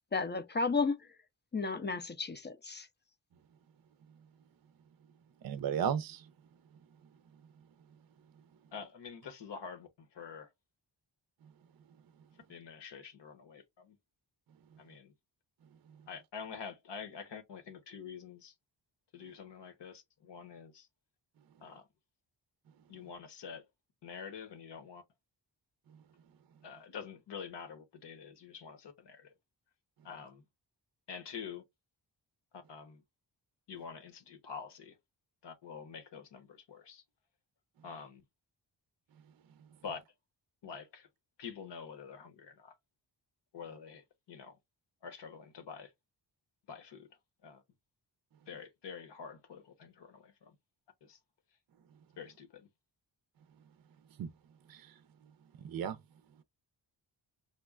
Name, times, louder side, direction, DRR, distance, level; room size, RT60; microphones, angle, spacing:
voice 1, 0.1-1.0 1.5-2.9, left 4 dB, 25° left, 0.5 m, -33 dB
voice 2, 5.4-6.2 54.2-54.3 54.7-54.8 55.6-56.0, right 8 dB, 50° right, 0.5 m, -33 dB
voice 3, 8.7-10.5 12.5-14.0 14.8-15.1 16.1-18.5 19.1-20.9 21.6-21.9 22.9-23.6 24.0-25.0 26.6-29.3 30.0-30.4 31.1-31.6 32.5-33.0 33.7-35.0 35.4-37.0 37.8-38.2 39.8-40.0 40.6-41.1 41.4-42.8 43.5-44.6 45.0-45.9 46.7-47.1 47.4-47.6 48.5-50.6 51.0-51.2 52.2-52.7, left 6 dB, 65° left, 0.9 m, -47 dB
5.2 x 2.2 x 2.3 m
cardioid pair, 65°, 46 cm